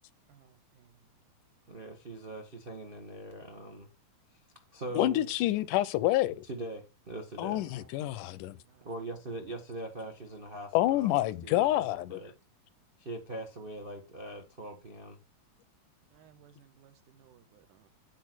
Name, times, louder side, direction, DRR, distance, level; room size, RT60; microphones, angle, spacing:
voice 1, 0.3-1.1 7.5-8.0 8.5-8.9 16.1-17.9, right 9 dB, 80° right, 2.7 m, -60 dB
voice 2, 1.7-3.9 4.3-4.4 4.7-5.3 6.5-7.6 8.8-12.3 13.0-15.2, right 1 dB, 55° right, 0.6 m, -42 dB
voice 3, 5.0-6.5 7.4-8.6 10.7-12.2, left 15 dB, 85° left, 2.2 m, -28 dB
9.4 x 4.6 x 6.2 m
omnidirectional pair, 3.6 m